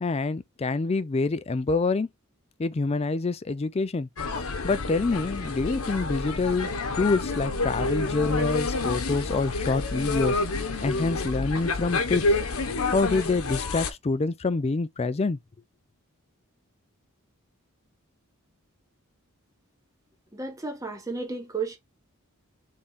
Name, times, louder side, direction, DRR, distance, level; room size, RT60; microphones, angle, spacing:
voice 1, 0.0-2.1 2.6-4.1 4.6-6.7 7.0-12.4 12.9-15.4, left 3 dB, 25° left, 0.4 m, -26 dB
sound 1, 4.2-13.9, left 3 dB, 70° left, 0.9 m, -28 dB
voice 2, 20.3-21.8, right 4 dB, 15° right, 1.2 m, -33 dB
4.2 x 3.6 x 3.5 m
head